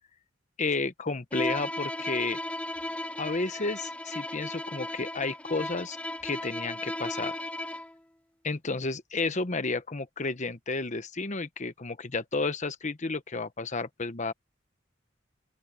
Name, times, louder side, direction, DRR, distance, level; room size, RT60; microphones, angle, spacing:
voice 1, 0.6-2.4 3.2-6.0 6.2-7.4 8.4-14.3, left 3 dB, 40° left, 1.1 m, -32 dB
Bowed string instrument, 1.3-8.0, left 1 dB, 5° left, 0.5 m, -35 dB
open air
head